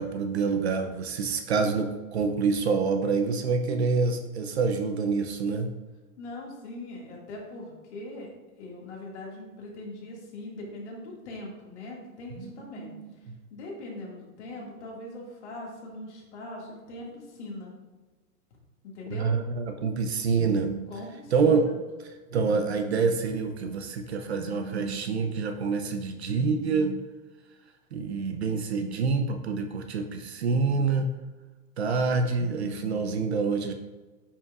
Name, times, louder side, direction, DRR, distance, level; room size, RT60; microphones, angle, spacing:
voice 1, 0.0-5.7 12.7-13.1 19.1-20.9 21.3-21.7 22.3-27.0 27.9-31.1 31.8-33.7, right 4 dB, 50° right, 6 dB, 0.6 m, -26 dB
voice 2, 6.2-8.3 8.6-12.9 13.5-17.7 18.9-19.3 20.9-21.8, left 2 dB, 50° left, -2 dB, 2.1 m, -41 dB
9.2 x 5.8 x 2.4 m, 1.2 s
supercardioid pair, 175°, 44 cm